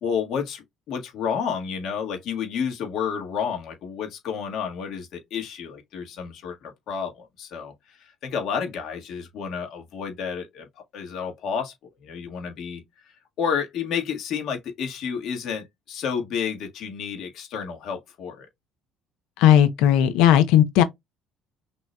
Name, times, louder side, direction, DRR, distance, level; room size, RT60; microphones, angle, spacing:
voice 1, 0.0-10.7 10.9-11.7 12.0-12.8 13.4-18.5, left 7 dB, 50° left, 1.6 m, -30 dB
voice 2, 19.4-20.8, left 10 dB, 85° left, 0.7 m, -16 dB
5.9 x 2.8 x 2.3 m
cardioid pair, 160°, 0 cm